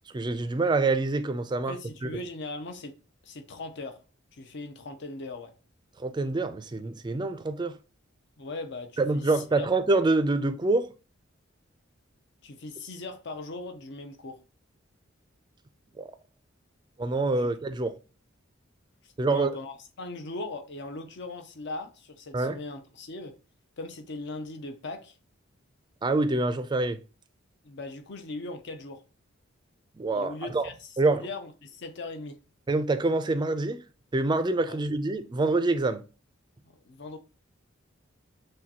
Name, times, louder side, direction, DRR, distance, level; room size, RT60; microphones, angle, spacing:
voice 1, 0.1-1.7 2.0-2.1 6.0-7.8 9.0-10.9 16.0-16.1 17.0-18.0 19.2-19.5 22.3-22.6 26.0-27.0 30.0-30.6 31.0-31.3 32.7-33.8 34.1-36.0, right 2 dB, 20° right, 0.4 m, -26 dB
voice 2, 1.7-2.9 3.2-4.0 4.3-5.5 8.4-9.2 9.6-9.7 12.4-14.4 17.4-17.5 19.3-23.3 23.8-25.2 27.6-29.0 30.1-32.4 34.7-34.8 36.6-37.2, left 2 dB, 60° left, 0.7 m, -39 dB
6.3 x 2.3 x 2.9 m
head